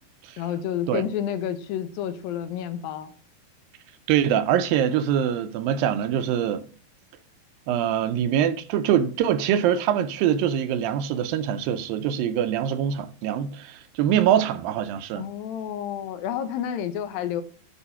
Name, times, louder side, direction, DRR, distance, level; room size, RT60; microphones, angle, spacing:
voice 1, 0.4-3.1 15.2-17.4, left 9 dB, 80° left, 2.6 m, -30 dB
voice 2, 4.1-6.6 7.7-15.2, right 9 dB, 80° right, 2.4 m, -24 dB
11.5 x 4.9 x 5.6 m
omnidirectional pair, 4.2 m